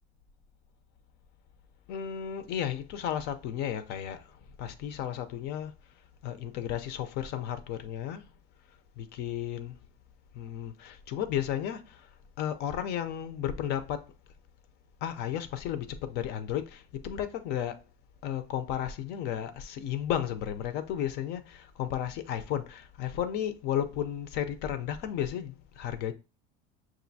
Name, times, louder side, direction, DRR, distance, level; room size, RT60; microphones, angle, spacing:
voice 1, 1.9-4.2 4.6-5.7 6.2-8.2 9.0-9.7 10.3-12.0 12.4-14.0 15.0-17.8 18.2-26.1, left 10 dB, 60° left, 0.6 m, -33 dB
6.0 x 2.6 x 2.7 m
cardioid pair, 140°, 20 cm